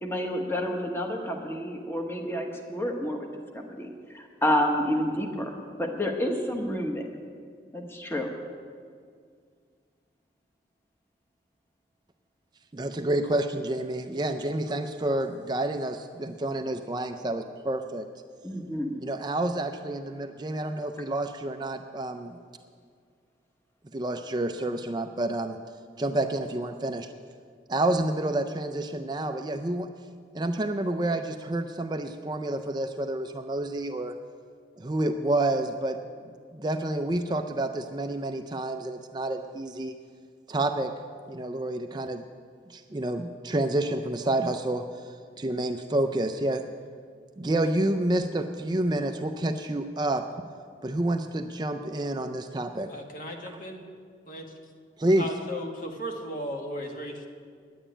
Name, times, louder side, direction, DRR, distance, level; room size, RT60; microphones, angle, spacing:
voice 1, 0.0-7.0 7.7-8.3 18.4-19.0, equal, 15° left, 2 dB, 1.1 m, -29 dB
voice 2, 12.7-18.1 19.0-22.4 23.9-25.6 26.0-27.1 27.7-29.9 30.3-34.1 34.8-36.0 36.5-39.9 40.5-40.9 41.3-42.2 42.7-44.8 45.4-46.6 47.4-50.2 50.8-52.9 55.0-55.3, right 1 dB, 25° right, 6 dB, 0.4 m, -29 dB
voice 3, 52.9-53.8 54.2-54.5 55.2-57.3, equal, 50° left, 2 dB, 1.6 m, -36 dB
10.0 x 8.9 x 9.9 m, 2.1 s
head